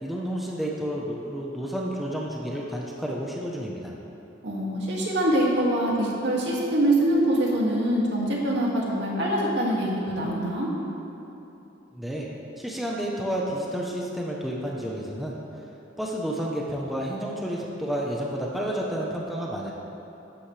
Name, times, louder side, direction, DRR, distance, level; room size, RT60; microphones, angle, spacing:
voice 1, 0.0-3.9 11.9-12.3 12.6-15.4 16.0-19.7, equal, ahead, -3 dB, 1.0 m, -30 dB
voice 2, 4.4-10.7, right 1 dB, 65° right, -4 dB, 2.5 m, -24 dB
15.5 x 11.5 x 3.4 m, 2.9 s
head